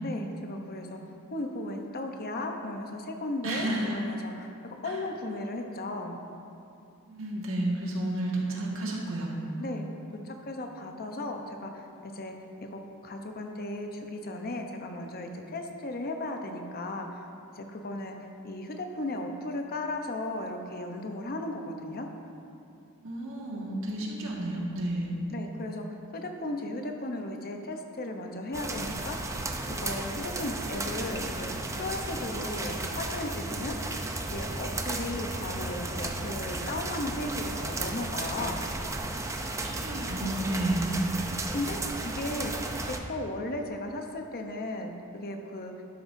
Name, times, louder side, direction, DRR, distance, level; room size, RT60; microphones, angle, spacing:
voice 1, 0.0-1.0 1.3-6.2 9.6-9.8 10.2-12.3 12.7-17.2 17.5-18.2 18.4-22.1 25.3-25.8 26.1-29.3 29.7-33.7 34.3-38.7 41.5-42.5 42.8-45.8, left 2 dB, 45° left, 3 dB, 0.8 m, -36 dB
voice 2, 3.4-4.0 4.8-5.0 7.1-9.3 23.0-25.1 39.5-40.9, right 1 dB, 70° right, -3 dB, 1.8 m, -31 dB
sound 1, 28.5-43.0, right 2 dB, 15° right, 0.5 m, -34 dB
12.0 x 10.5 x 2.7 m, 2.6 s
head